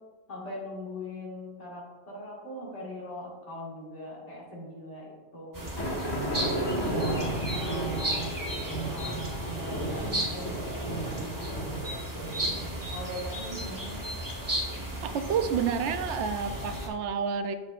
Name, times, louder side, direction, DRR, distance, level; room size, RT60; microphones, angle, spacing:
voice 1, 0.3-8.3 8.9-12.0 12.9-14.1, left 1 dB, 80° left, -5 dB, 2.1 m, -41 dB
sound 1, 5.5-16.9, right 1 dB, 20° right, 0.9 m, -35 dB
sound 2, 5.8-12.9, right 1 dB, 20° left, 1.2 m, -33 dB
voice 2, 15.0-17.5, right 6 dB, 80° right, 9 dB, 0.9 m, -29 dB
6.7 x 6.3 x 2.4 m, 1.3 s
omnidirectional pair, 1.2 m